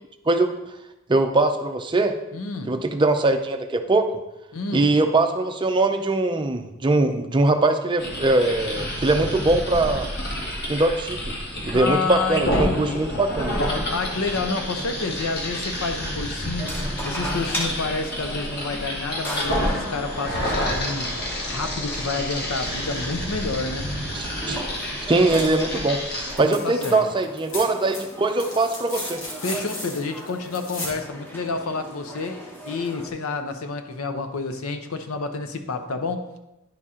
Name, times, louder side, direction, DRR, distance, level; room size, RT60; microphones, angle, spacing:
voice 1, 1.1-2.1 2.7-4.1 4.7-10.1 10.7-11.4 11.6-13.6 24.1-24.6 25.0-26.0 26.4-29.2, right 2 dB, 20° right, 6 dB, 0.5 m, -21 dB
voice 2, 2.3-2.8 4.5-4.9 11.7-13.2 13.9-23.9 26.4-27.0 29.4-36.4, left 3 dB, 85° left, 7 dB, 0.7 m, -29 dB
sound 1, 8.0-26.3, equal, 50° left, 1.5 m, -29 dB
sound 2, 16.6-33.1, equal, 10° left, 1.0 m, -38 dB
sound 3, 26.3-26.9 27.2-31.0 32.7-32.8, left 2 dB, 65° left, 1.9 m, -35 dB
10.0 x 4.2 x 3.7 m, 0.95 s
head